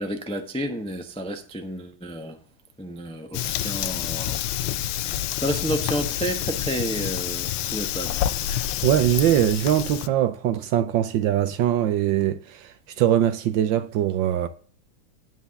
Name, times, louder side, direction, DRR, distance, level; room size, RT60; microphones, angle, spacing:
voice 1, 0.0-2.4 2.8-4.4 5.0-8.3, right 1 dB, 5° left, 0.4 m, -31 dB
Fire, 3.3-10.1, left 11 dB, 80° left, 1.4 m, -28 dB
voice 2, 8.8-14.5, right 11 dB, 75° right, 1.2 m, -22 dB
10.0 x 4.7 x 6.9 m
omnidirectional pair, 2.4 m